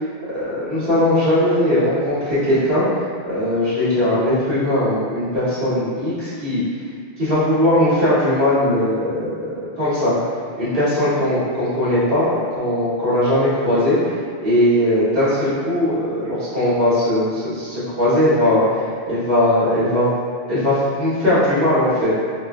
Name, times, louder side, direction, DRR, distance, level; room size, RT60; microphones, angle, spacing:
voice 1, 0.3-2.8 3.3-6.6 7.2-10.2 10.6-20.1 20.5-22.1, left 1 dB, 60° right, -14 dB, 1.5 m, -19 dB
3.0 x 2.2 x 2.4 m, 2.2 s
omnidirectional pair, 1.1 m